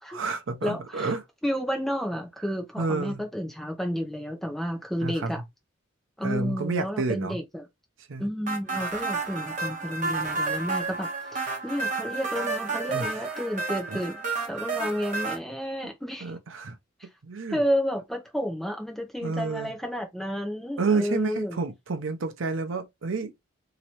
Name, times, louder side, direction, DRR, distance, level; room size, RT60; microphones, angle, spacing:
voice 1, 0.1-1.2 2.8-3.2 5.0-5.3 6.2-7.4 8.1-8.3 12.9-13.1 13.9-14.0 16.2-16.8 17.2-17.6 19.2-19.7 20.8-23.3, right 4 dB, 75° right, 0.6 m, -29 dB
voice 2, 0.6-1.2 1.4-5.4 6.2-7.7 8.2-16.3 17.0-17.1 17.5-21.6, equal, ahead, 0.8 m, -31 dB
sound 1, 8.5-15.4, right 3 dB, 40° right, 1.1 m, -31 dB
3.0 x 2.9 x 2.9 m
head